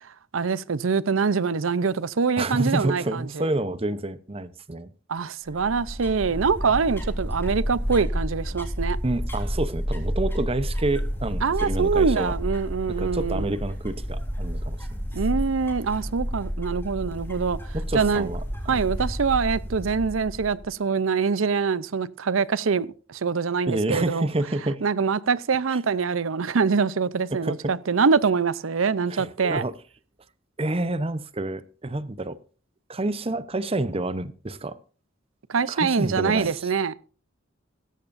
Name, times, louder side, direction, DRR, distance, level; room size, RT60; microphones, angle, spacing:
voice 1, 0.0-3.5 5.1-9.0 11.4-13.6 15.1-18.3 18.7-24.3 24.8-29.6 35.5-36.9, right 5 dB, 85° right, 0.6 m, -24 dB
voice 2, 2.4-4.9 9.0-12.3 13.0-15.0 17.7-18.4 18.7-18.8 23.7-24.8 25.7-25.8 27.3-27.7 29.1-29.7 30.6-32.4 32.9-34.8 35.7-36.7, right 2 dB, 30° right, 0.8 m, -28 dB
sound 1, 5.5-20.7, equal, 10° left, 3.7 m, -30 dB
16.5 x 14.0 x 2.6 m
head